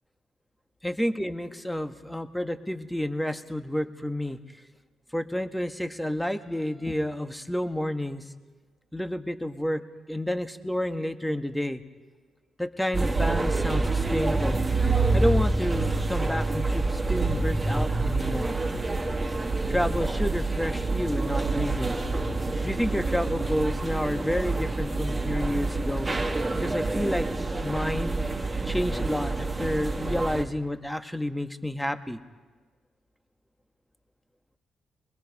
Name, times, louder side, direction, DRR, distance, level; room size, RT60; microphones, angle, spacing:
voice 1, 0.8-4.4 5.1-8.2 8.9-11.8 12.6-14.6 15.1-18.6 19.7-22.0 22.6-26.1 26.5-27.3 27.6-28.2 28.6-32.2, equal, 5° left, 8 dB, 1.6 m, -30 dB
sound 1, 12.9-30.4, right 3 dB, 20° right, 2.6 m, -27 dB
23.0 x 21.0 x 5.4 m, 1.4 s
hypercardioid pair, 40°, 0 cm